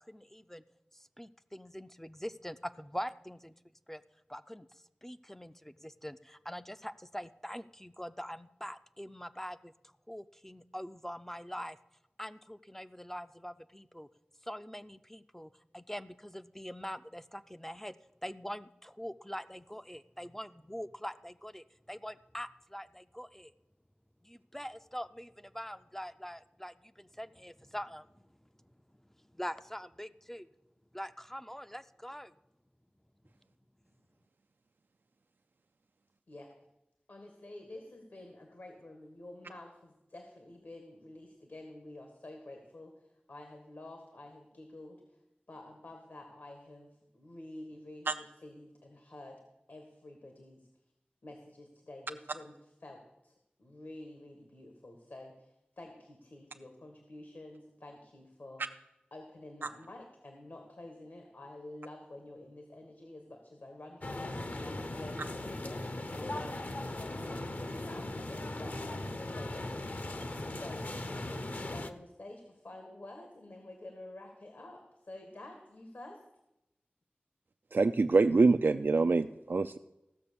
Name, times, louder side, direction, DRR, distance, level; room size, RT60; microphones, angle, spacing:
voice 1, 0.1-0.6 1.2-3.5 3.9-4.0 4.3-4.7 5.0-9.7 10.1-11.8 12.2-14.1 14.4-17.9 18.2-23.5 24.2-28.1 29.3-30.5 30.9-32.3, equal, 10° left, 11 dB, 0.4 m, -43 dB
voice 2, 37.1-45.0 45.5-49.4 49.7-50.7 51.2-52.5 52.8-53.3 53.6-58.6 59.1-68.3 68.6-76.2, left 1 dB, 75° left, 3 dB, 1.7 m, -49 dB
sound 1, 64.0-71.9, left 2 dB, 50° left, 0.8 m, -38 dB
voice 3, 77.7-79.8, right 3 dB, 65° right, 8 dB, 0.4 m, -25 dB
15.5 x 6.4 x 6.9 m, 0.90 s
wide cardioid pair, 65°, 4 cm